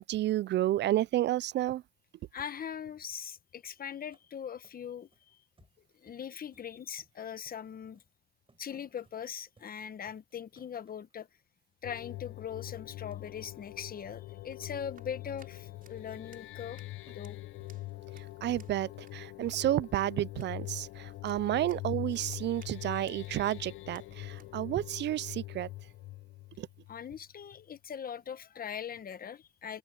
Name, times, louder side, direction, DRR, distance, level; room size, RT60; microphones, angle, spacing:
voice 1, 0.0-1.8 18.2-25.7 26.6-26.7, right 14 dB, 65° right, 0.4 m, -31 dB
voice 2, 2.3-5.4 5.9-8.0 8.6-11.3 11.8-16.8 17.1-17.4 26.9-29.8, left 8 dB, 45° left, 1.1 m, -41 dB
sound 1, 4.1-4.2 4.6-5.2 5.6-6.3 6.5-7.6 7.9-8.1 8.5-8.7 9.0-9.2 9.5-9.8 10.0-11.3 11.7-11.8 12.0-12.2 12.6-13.2 13.5-19.2, right 3 dB, 25° right, 7.4 m, -67 dB
sound 2, 11.8-27.3, left 17 dB, 80° left, 0.8 m, -43 dB
sound 3, 13.9-24.5, right 6 dB, 45° right, 6.6 m, -64 dB
open air
cardioid pair, 90°, 20 cm